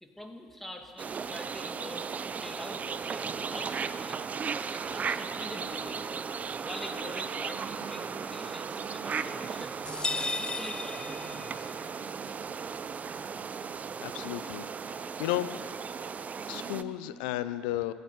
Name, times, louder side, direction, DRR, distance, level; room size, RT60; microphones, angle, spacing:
voice 1, 0.0-6.1 6.6-11.7, left 1 dB, 5° left, 3 dB, 2.3 m, -45 dB
sound 1, 1.0-16.8, right 6 dB, 35° right, 0.6 m, -36 dB
sound 2, 5.1-17.1, right 3 dB, 50° right, 2.2 m, -52 dB
sound 3, 9.9-11.8, left 3 dB, 20° left, 0.6 m, -35 dB
voice 2, 14.0-14.6 14.9-15.6 16.5-17.9, left 15 dB, 75° left, 14 dB, 0.5 m, -33 dB
16.0 x 9.4 x 8.4 m, 2.2 s
hypercardioid pair, 55°, 4 cm